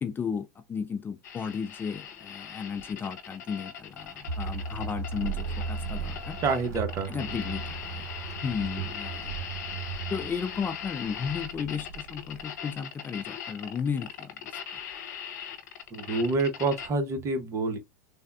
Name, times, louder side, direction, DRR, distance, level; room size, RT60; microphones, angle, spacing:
voice 1, 0.0-6.4 7.1-8.0 8.4-9.3 10.1-14.5, left 6 dB, 20° left, 0.4 m, -34 dB
sound 1, 1.2-16.9, left 8 dB, 75° left, 0.8 m, -40 dB
Thunder, 4.2-12.6, right 8 dB, 65° right, 1.0 m, -42 dB
sound 2, 4.3-11.0, right 4 dB, 85° right, 0.8 m, -38 dB
voice 2, 6.4-7.1 15.9-17.8, right 3 dB, 35° right, 0.9 m, -27 dB
3.5 x 2.2 x 2.4 m
hypercardioid pair, 100°, 9 cm